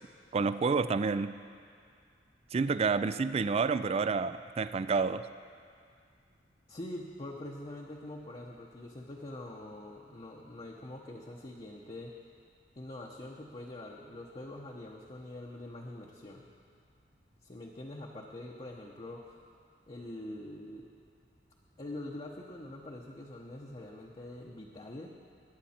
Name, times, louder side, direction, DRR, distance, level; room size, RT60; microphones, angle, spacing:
voice 1, 0.3-1.3 2.5-5.3, right 4 dB, 35° right, 13 dB, 0.3 m, -29 dB
voice 2, 6.7-12.2 12.8-16.5 17.4-19.4 19.8-20.9 21.8-25.1, left 1 dB, 30° left, -2 dB, 0.8 m, -44 dB
21.0 x 8.9 x 4.3 m, 2.2 s
head